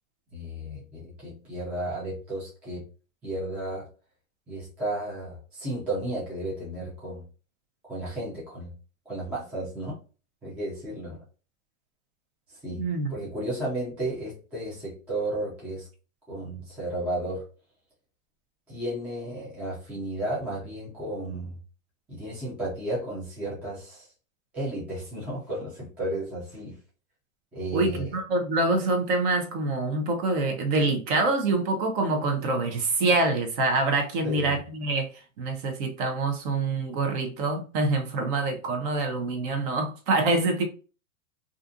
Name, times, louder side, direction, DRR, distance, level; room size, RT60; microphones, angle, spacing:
voice 1, 0.3-2.8 3.2-3.9 4.5-7.2 7.8-8.7 9.1-10.0 10.4-11.2 12.5-12.8 13.1-15.9 16.3-17.4 18.7-21.6 22.1-24.1 24.5-26.8 27.5-28.2 34.2-34.6, right 1 dB, 5° right, 0.4 m, -33 dB
voice 2, 12.8-13.1 27.7-35.1 35.4-40.6, right 2 dB, 40° right, 0.7 m, -25 dB
2.5 x 2.4 x 2.5 m
supercardioid pair, 145°, 42 cm